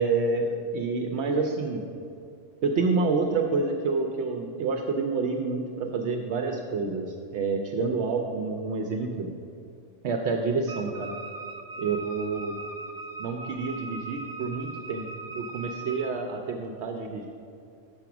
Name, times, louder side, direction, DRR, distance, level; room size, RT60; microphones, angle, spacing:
voice 1, 0.0-1.8 2.6-9.3 10.0-11.1 11.8-12.5 13.2-15.1 15.3-17.3, right 4 dB, 70° right, 3 dB, 0.8 m, -28 dB
Wind instrument woodwind instrument, 10.7-16.2, right 2 dB, 45° right, 0.5 m, -39 dB
6.0 x 5.9 x 5.8 m, 2.6 s
omnidirectional pair, 1.3 m